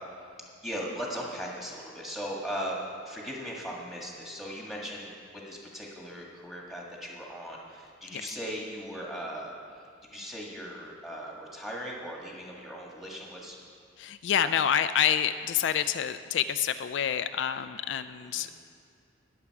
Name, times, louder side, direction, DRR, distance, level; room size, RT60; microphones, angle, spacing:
voice 1, 0.6-2.8 3.1-13.6 18.3-18.5, equal, ahead, -3 dB, 1.8 m, -38 dB
voice 2, 14.0-18.5, left 9 dB, 65° left, 11 dB, 0.3 m, -28 dB
20.0 x 7.2 x 4.8 m, 2.3 s
head